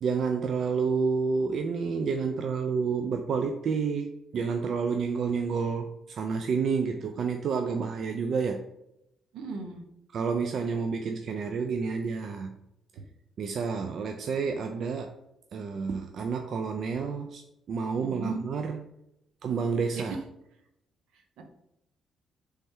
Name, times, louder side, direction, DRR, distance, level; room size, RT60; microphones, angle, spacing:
voice 1, 0.0-8.7 10.1-12.5 13.4-15.2 15.5-17.4 17.7-18.8 19.4-20.2, right 5 dB, 60° right, 5 dB, 0.4 m, -29 dB
voice 2, 9.3-9.8 18.0-18.4 20.0-20.2 21.1-21.4, right 3 dB, 85° right, 4 dB, 0.8 m, -38 dB
3.3 x 3.3 x 4.4 m, 0.83 s
cardioid pair, 90°, 0 cm